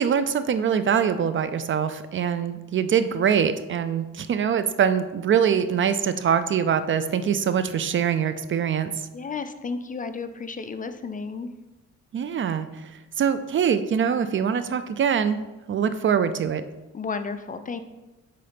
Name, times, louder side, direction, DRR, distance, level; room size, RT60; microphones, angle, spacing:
voice 1, 0.0-9.1 12.1-12.9 13.2-15.4 15.7-16.6, right 7 dB, 40° right, 12 dB, 0.4 m, -23 dB
voice 2, 9.1-11.5 16.9-17.8, left 4 dB, 25° left, 10 dB, 0.4 m, -32 dB
5.6 x 3.9 x 5.0 m, 1.1 s
cardioid pair, 90°, 30 cm